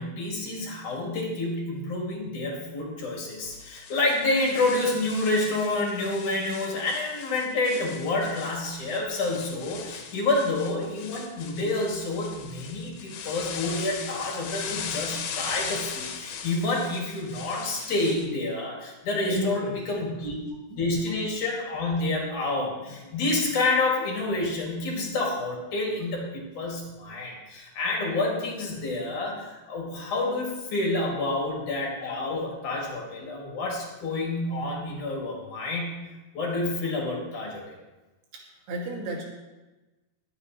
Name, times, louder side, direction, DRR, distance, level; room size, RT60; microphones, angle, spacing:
voice 1, 0.0-20.3 20.8-36.0 36.3-37.8, left 2 dB, 55° left, -2 dB, 3.6 m, -28 dB
sound 1, 3.5-18.3, left 7 dB, 80° left, 3.1 m, -39 dB
voice 2, 19.2-20.1 20.7-20.9 22.9-23.0 38.3-38.4 38.7-39.2, equal, 80° right, -2 dB, 4.3 m, -33 dB
22.0 x 8.6 x 3.2 m, 1.1 s
omnidirectional pair, 4.6 m